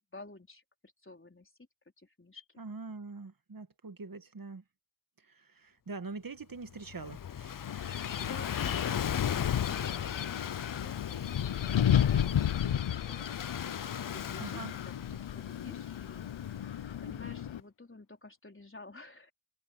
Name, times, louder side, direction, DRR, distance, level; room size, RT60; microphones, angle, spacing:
voice 1, 0.1-1.5 2.0-2.6 7.7-19.3, left 2 dB, 25° left, 4.0 m, -52 dB
voice 2, 2.6-4.6 5.2-7.6 14.4-14.7, right 3 dB, 45° right, 1.8 m, -44 dB
Gull seagull / Waves surf, 6.7-17.2, left 9 dB, 45° left, 0.6 m, -38 dB
Wind, 7.7-17.6, left 10 dB, 70° left, 0.8 m, -33 dB
cardioid pair, 50°, 48 cm